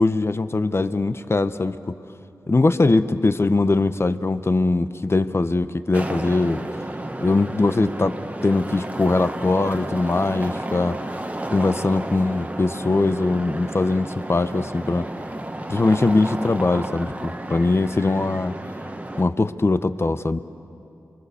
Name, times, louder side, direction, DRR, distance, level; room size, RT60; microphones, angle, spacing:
voice 1, 0.0-1.8 2.5-6.6 7.2-11.0 11.5-15.1 15.7-18.6 19.2-20.4, left 3 dB, 35° left, 12 dB, 1.0 m, -21 dB
sound 1, 5.9-19.2, right 1 dB, 20° right, 1.5 m, -32 dB
29.0 x 23.0 x 7.0 m, 2.7 s
cardioid pair, 45°, 7 cm